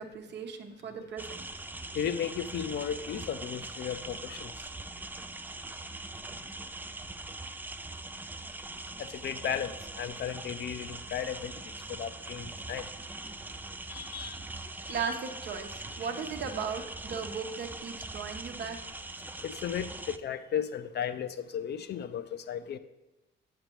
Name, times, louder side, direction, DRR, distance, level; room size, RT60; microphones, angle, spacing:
voice 1, 0.0-1.4 14.9-18.8, right 6 dB, 60° right, 0.9 m, -37 dB
sound 1, 1.2-20.2, right 2 dB, 10° right, 0.3 m, -42 dB
voice 2, 1.9-4.5 9.0-9.7 10.0-11.5 11.9-12.9 13.9-14.4 19.4-22.8, left 8 dB, 55° left, 0.5 m, -35 dB
7.8 x 6.7 x 3.0 m
cardioid pair, 90°, 20 cm